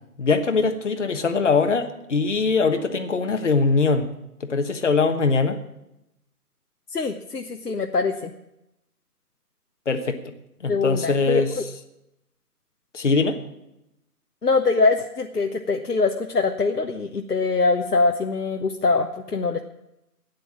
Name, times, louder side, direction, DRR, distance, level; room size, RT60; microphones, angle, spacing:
voice 1, 0.2-4.1 4.4-5.6 9.9-10.2 10.6-11.5 12.9-13.4, left 4 dB, 50° left, 6 dB, 1.3 m, -22 dB
voice 2, 6.9-8.3 10.7-11.6 14.4-19.6, left 4 dB, 80° left, 4 dB, 1.1 m, -23 dB
13.0 x 9.5 x 7.3 m, 0.87 s
figure-of-eight pair, 155°, 47 cm